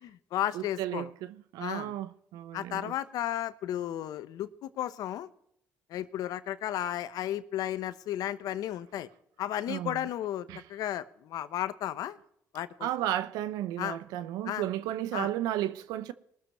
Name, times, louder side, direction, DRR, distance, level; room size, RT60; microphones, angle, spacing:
voice 1, 0.0-1.1 1.6-1.9 2.5-5.3 5.9-9.1 9.4-12.2 12.5-12.9 13.8-14.0 14.4-14.6 15.1-15.3, left 12 dB, 75° left, 0.9 m, -34 dB
voice 2, 0.5-2.9 9.7-10.1 10.5-10.6 12.8-16.1, right 12 dB, 85° right, 0.6 m, -33 dB
21.5 x 7.2 x 4.3 m
supercardioid pair, 70°, 6 cm